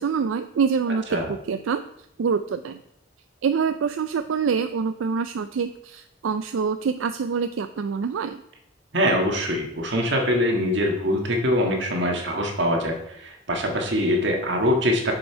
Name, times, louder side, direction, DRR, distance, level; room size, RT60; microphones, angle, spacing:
voice 1, 0.0-1.2 1.5-1.8 2.2-2.8 3.4-8.4, right 6 dB, 85° right, 9 dB, 0.4 m, -25 dB
voice 2, 8.9-15.1, equal, 65° right, 2 dB, 1.6 m, -23 dB
6.8 x 6.6 x 4.5 m, 0.78 s
head